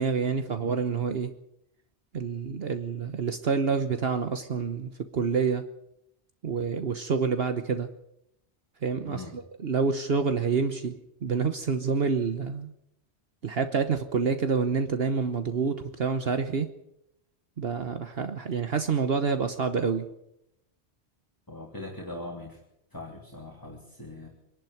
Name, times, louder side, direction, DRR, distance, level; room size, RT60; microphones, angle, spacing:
voice 1, 0.0-1.3 2.1-5.7 6.4-7.9 8.8-12.7 13.4-16.7 17.6-20.1, right 5 dB, 60° right, 9 dB, 1.3 m, -28 dB
voice 2, 21.5-22.6 22.9-24.3, left 2 dB, 20° left, 0 dB, 2.9 m, -41 dB
24.5 x 11.5 x 9.4 m, 0.82 s
omnidirectional pair, 1.1 m